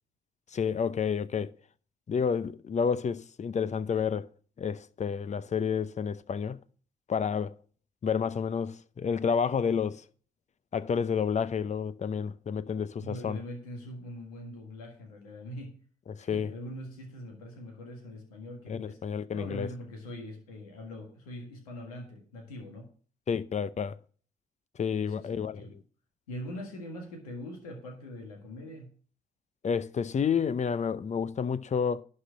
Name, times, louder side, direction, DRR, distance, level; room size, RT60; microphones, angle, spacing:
voice 1, 0.5-1.5 2.1-4.3 4.6-6.6 7.1-7.5 8.0-10.0 10.7-13.4 16.1-16.5 18.7-19.7 23.3-23.9 24.8-25.7 29.6-32.0, left 6 dB, 40° left, 0.7 m, -30 dB
voice 2, 12.8-15.8 16.2-22.9 25.0-25.8 26.3-28.9, left 1 dB, 90° left, 1.7 m, -43 dB
11.5 x 4.3 x 7.5 m
hypercardioid pair, 45°, 18 cm